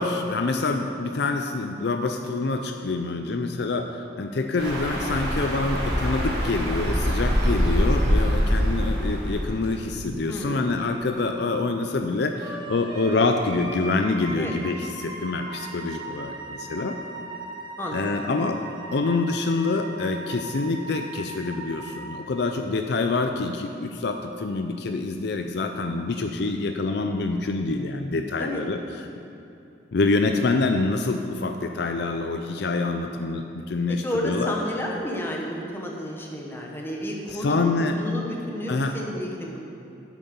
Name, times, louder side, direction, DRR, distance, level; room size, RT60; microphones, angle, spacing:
voice 1, 0.0-17.0 17.9-18.6 18.9-29.1 29.9-34.5 37.3-38.0 38.7-38.9, left 3 dB, 60° left, 5 dB, 0.5 m, -26 dB
sound 1, 4.6-9.8, equal, 55° right, 2.7 m, -24 dB
voice 2, 10.3-10.8 14.3-14.5 17.8-18.3 28.4-28.6 34.0-39.6, equal, 10° left, -1 dB, 1.2 m, -31 dB
Wind instrument woodwind instrument, 12.4-22.3, right 2 dB, 25° right, 1.3 m, -39 dB
8.3 x 7.5 x 7.0 m, 2.8 s
head